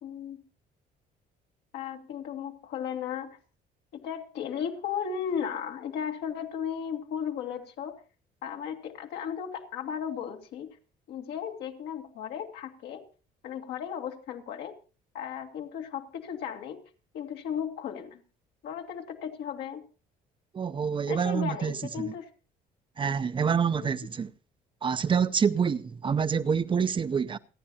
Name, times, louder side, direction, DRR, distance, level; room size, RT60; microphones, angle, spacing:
voice 1, 0.0-0.4 1.7-3.4 3.9-8.0 8.4-10.8 11.1-13.0 13.4-14.8 15.1-16.8 17.1-18.2 18.6-19.8 21.1-22.3 23.8-23.9, left 8 dB, 80° left, 2.4 m, -35 dB
voice 2, 20.5-22.1 23.0-24.3 24.8-27.4, right 6 dB, 30° right, 0.6 m, -27 dB
29.0 x 9.8 x 2.8 m
cardioid pair, 110°, 17 cm